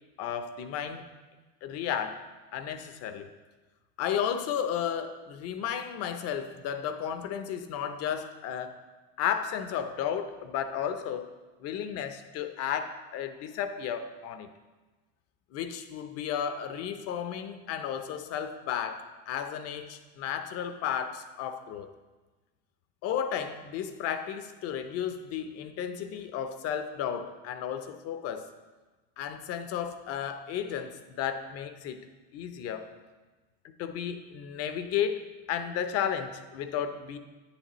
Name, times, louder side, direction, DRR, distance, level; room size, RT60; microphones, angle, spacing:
voice 1, 0.2-1.1 1.6-2.2 2.5-3.3 4.0-8.8 9.2-11.3 11.6-14.5 15.5-21.9 23.0-28.5 29.2-32.1 32.3-32.9 33.6-37.2, left 8 dB, 50° left, 9 dB, 0.7 m, -33 dB
9.1 x 7.1 x 3.0 m, 1.3 s
supercardioid pair, 120°, 31 cm